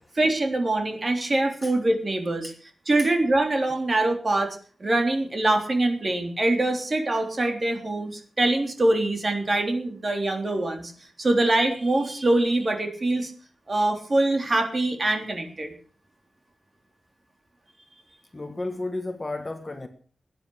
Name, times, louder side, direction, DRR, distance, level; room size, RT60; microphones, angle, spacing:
voice 1, 0.1-2.5 2.9-10.9 11.2-13.3 13.7-15.7, right 2 dB, 30° right, 3.5 m, -24 dB
voice 2, 18.3-19.9, left 2 dB, 20° left, 1.5 m, -33 dB
19.0 x 10.0 x 6.4 m
wide cardioid pair, 160°, 0 cm